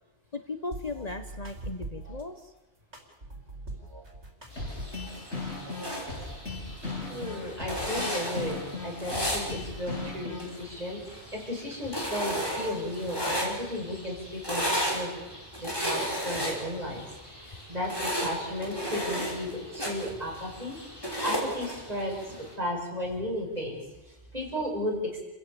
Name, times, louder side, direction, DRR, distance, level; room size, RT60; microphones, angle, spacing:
voice 1, 0.3-2.5, left 3 dB, 35° left, 7 dB, 1.2 m, -37 dB
sound 1, 0.7-2.3 2.9-5.2 5.5-6.5, right 2 dB, 70° right, 4.8 m, -42 dB
sound 2, 4.5-22.5, equal, 20° left, 5.1 m, -35 dB
sound 3, 4.6-10.6, left 3 dB, 80° left, 7.7 m, -37 dB
voice 2, 7.1-15.2 15.6-17.1 17.4-20.8 21.2-25.2, left 1 dB, 35° right, -1 dB, 6.8 m, -34 dB
30.0 x 16.0 x 7.2 m, 1.0 s
omnidirectional pair, 1.2 m